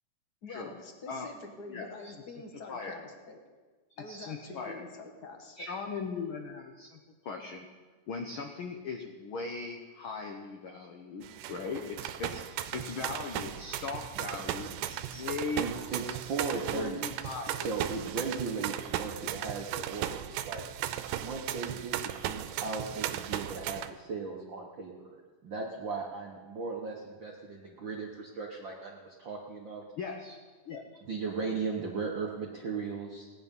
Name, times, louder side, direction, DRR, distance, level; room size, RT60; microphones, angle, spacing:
voice 1, 0.4-3.4 4.0-5.7, left 3 dB, 55° left, 3 dB, 1.1 m, -46 dB
voice 2, 1.7-2.1 2.7-3.0 3.9-4.8 5.6-7.7 8.1-12.4 12.7-15.7 16.5-17.7 30.0-30.4 30.7-31.0, left 4 dB, 85° left, 3 dB, 1.1 m, -39 dB
sound 1, 11.2-23.9, right 11 dB, 90° right, 2.3 m, -36 dB
voice 3, 14.8-20.7 21.2-21.9 22.3-25.2 25.4-29.8 31.0-33.3, right 4 dB, 55° right, -2 dB, 1.3 m, -37 dB
18.0 x 10.0 x 5.4 m, 1.4 s
omnidirectional pair, 3.7 m